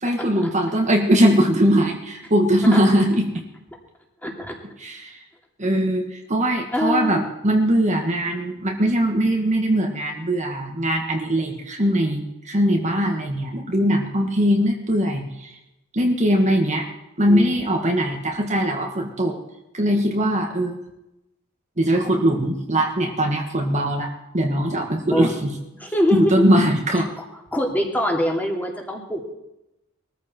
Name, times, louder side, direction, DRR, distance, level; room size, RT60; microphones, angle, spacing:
voice 1, 0.0-3.3 4.8-5.2 5.6-15.6 15.9-16.9 17.2-19.4 19.7-20.8 21.8-25.5 26.1-27.1, equal, 35° right, 1 dB, 1.7 m, -21 dB
voice 2, 4.2-4.6 6.7-7.2 17.3-17.5 25.1-25.3 25.8-26.5 27.5-29.3, left 1 dB, 10° left, 0 dB, 2.8 m, -23 dB
22.0 x 14.0 x 4.5 m, 0.92 s
head